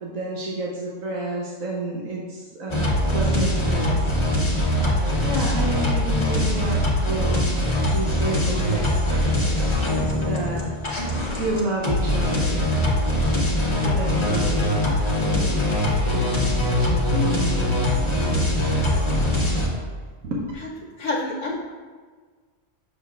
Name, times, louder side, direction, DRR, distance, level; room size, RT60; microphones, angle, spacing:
voice 1, 0.0-4.1 4.7-10.7 11.2-12.7 13.8-14.7 15.3-15.6 15.9-18.4 20.2-20.5, right 2 dB, 90° right, -3 dB, 1.3 m, -31 dB
sound 1, 2.7-19.7, left 1 dB, 25° left, 0.9 m, -22 dB
voice 2, 21.0-21.5, left 2 dB, 80° left, -4 dB, 1.2 m, -29 dB
7.0 x 6.5 x 2.4 m, 1.5 s
omnidirectional pair, 1.3 m